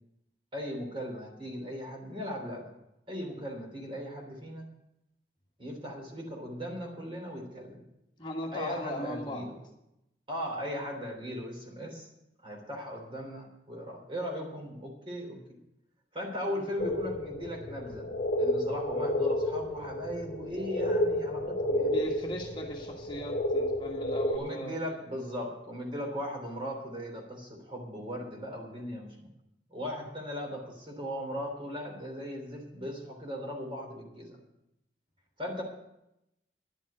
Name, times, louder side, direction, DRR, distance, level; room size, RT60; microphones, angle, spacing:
voice 1, 0.5-2.7 3.1-4.7 5.6-7.8 8.5-9.6 10.3-12.1 12.4-15.4 16.1-18.1 18.4-22.0 24.3-29.3 29.7-34.4 35.4-35.6, equal, 30° right, 1 dB, 3.3 m, -38 dB
voice 2, 8.2-9.5 16.5-16.6 21.8-25.0, equal, 25° left, 0 dB, 1.5 m, -38 dB
sound 1, 16.8-24.4, left 1 dB, 50° left, 1.4 m, -31 dB
11.0 x 7.3 x 9.8 m, 0.87 s
head